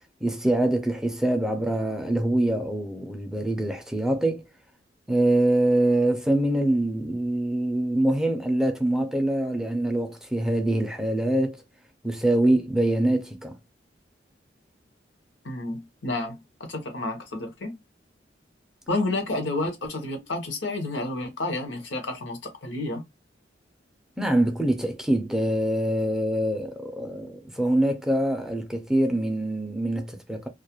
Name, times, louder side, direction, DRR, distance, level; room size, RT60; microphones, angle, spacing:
voice 1, 0.2-4.4 5.1-11.6 12.0-13.6 24.2-30.5, right 1 dB, 5° right, 0.3 m, -24 dB
voice 2, 15.4-17.8 18.9-23.0, left 2 dB, 80° left, 0.7 m, -30 dB
2.3 x 2.1 x 2.8 m
head